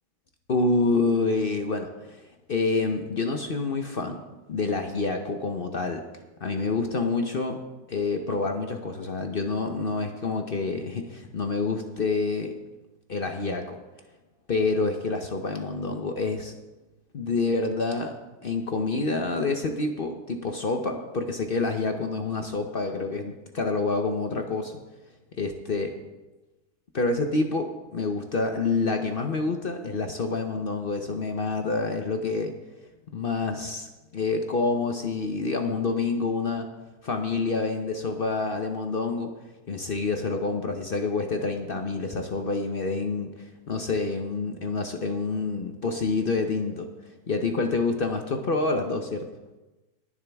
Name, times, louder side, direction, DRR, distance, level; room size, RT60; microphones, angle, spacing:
voice 1, 0.5-4.2 4.5-6.0 6.4-7.6 7.9-12.5 13.1-13.8 14.5-16.5 17.1-18.2 18.4-24.8 25.4-25.9 26.9-32.6 33.1-36.7 37.0-39.3 39.7-49.3, left 3 dB, 45° left, 5 dB, 0.7 m, -27 dB
19.5 x 7.3 x 3.5 m, 1.1 s
omnidirectional pair, 1.8 m